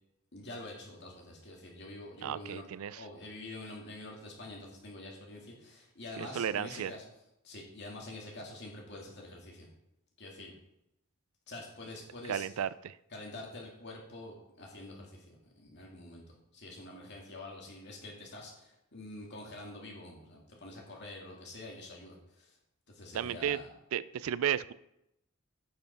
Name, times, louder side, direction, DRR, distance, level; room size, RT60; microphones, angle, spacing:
voice 1, 0.3-2.7 2.9-7.0 7.4-9.7 10.2-10.5 11.5-12.5 13.1-22.6 22.9-23.7, left 2 dB, 55° left, -1 dB, 2.5 m, -46 dB
voice 2, 2.2-3.0 6.2-6.9 12.3-13.0 23.1-23.6 23.9-24.7, right 9 dB, 75° right, 18 dB, 0.4 m, -33 dB
8.8 x 5.6 x 5.3 m, 0.83 s
head